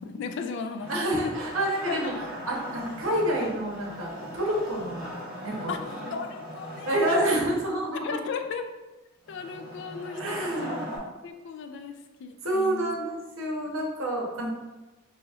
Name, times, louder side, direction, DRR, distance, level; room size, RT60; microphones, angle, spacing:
voice 1, 0.0-1.3 1.9-2.1 2.9-3.0 5.7-5.8 6.1-7.4 8.0-8.7 9.3-10.8 11.2-12.9, left 5 dB, 60° left, 7 dB, 0.3 m, -36 dB
Wood, 0.8-7.6 9.2-11.0, equal, 5° right, 1.1 m, -39 dB
voice 2, 0.9-2.1 2.5-5.1 5.4-5.8 6.9-8.2 10.1-10.9 12.4-14.5, right 1 dB, 70° right, -2 dB, 0.8 m, -28 dB
4.0 x 2.7 x 2.4 m, 1.1 s
head